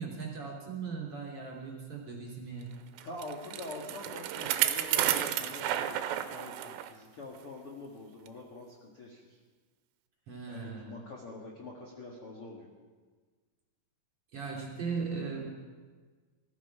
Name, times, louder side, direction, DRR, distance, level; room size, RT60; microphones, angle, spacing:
voice 1, 0.0-2.7 10.3-10.9 14.3-15.5, right 5 dB, 35° right, -3 dB, 3.3 m, -38 dB
voice 2, 3.0-9.2 10.4-12.7, left 2 dB, 60° left, -3 dB, 1.5 m, -45 dB
Bicycle, 3.0-6.9 7.3-7.4 8.3-8.4, right 12 dB, 80° right, 2.7 m, -32 dB
20.0 x 14.0 x 4.8 m, 1.4 s
omnidirectional pair, 5.6 m